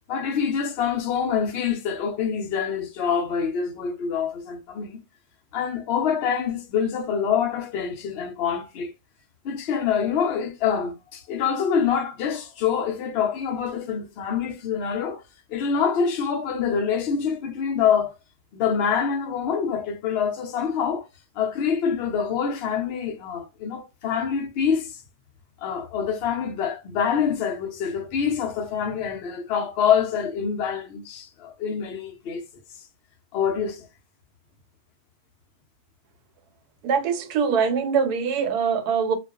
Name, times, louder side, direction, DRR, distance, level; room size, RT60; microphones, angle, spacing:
voice 1, 0.1-5.0 5.5-8.9 9.4-15.2 15.5-18.1 18.5-21.1 21.4-25.0 25.6-32.4 33.3-33.9, left 7 dB, 80° left, 0.5 m, -25 dB
voice 2, 36.8-39.1, right 6 dB, 80° right, 1.1 m, -23 dB
2.4 x 2.2 x 2.3 m
omnidirectional pair, 1.6 m